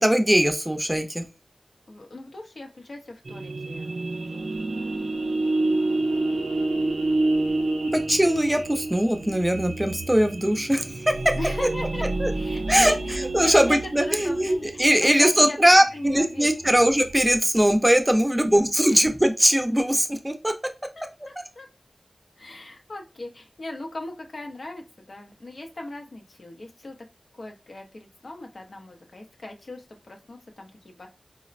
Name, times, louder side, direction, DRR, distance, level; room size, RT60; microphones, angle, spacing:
voice 1, 0.0-1.2 7.6-11.1 12.2-12.3 12.7-20.5, right 1 dB, 15° right, 5 dB, 0.5 m, -21 dB
voice 2, 1.9-5.1 5.7-6.0 10.7-10.8 11.4-12.1 12.3-16.8 18.3-19.1 21.0-21.7 22.4-27.0 27.3-31.1, left 2 dB, 75° left, 2 dB, 0.5 m, -39 dB
sound 1, 3.2-17.4, right 2 dB, 75° right, 0.4 m, -29 dB
4.0 x 2.0 x 2.4 m, 0.29 s
wide cardioid pair, 50°, 0 cm